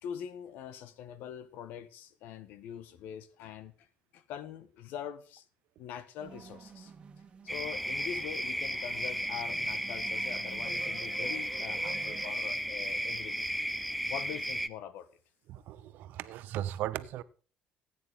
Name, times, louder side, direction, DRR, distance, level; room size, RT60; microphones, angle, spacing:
voice 1, 0.0-3.9 4.1-5.4 5.8-6.9 7.4-13.5 14.1-15.1, left 9 dB, 75° left, 1.5 m, -43 dB
sound 1, 6.2-12.3, right 6 dB, 35° right, 1.7 m, -50 dB
sound 2, 7.5-14.7, equal, ahead, 0.7 m, -34 dB
voice 2, 15.5-17.2, right 12 dB, 75° right, 1.0 m, -37 dB
15.5 x 9.3 x 3.8 m
cardioid pair, 120°, 3 cm